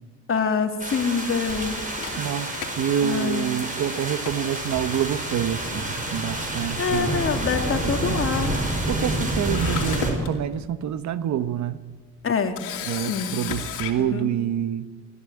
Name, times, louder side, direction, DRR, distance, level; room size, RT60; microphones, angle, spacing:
voice 1, 0.3-1.8 3.0-3.5 6.8-8.5 12.2-12.6 12.9-13.4 14.0-14.3, left 5 dB, 45° left, 2.2 m, -25 dB
sound 1, 0.8-10.1, right 1 dB, 25° right, 5.9 m, -28 dB
Camera, 2.0-3.5 3.9-4.0 4.2-5.1 6.0-6.3 6.6-6.7 9.1-9.2 9.5-10.3 10.9-11.0 12.6-13.9, left 9 dB, 85° left, 2.7 m, -34 dB
voice 2, 2.2-7.1 7.7-8.3 8.9-11.8 12.9-14.9, right 9 dB, 70° right, 1.1 m, -27 dB
21.0 x 14.0 x 9.7 m
cardioid pair, 90°, 30 cm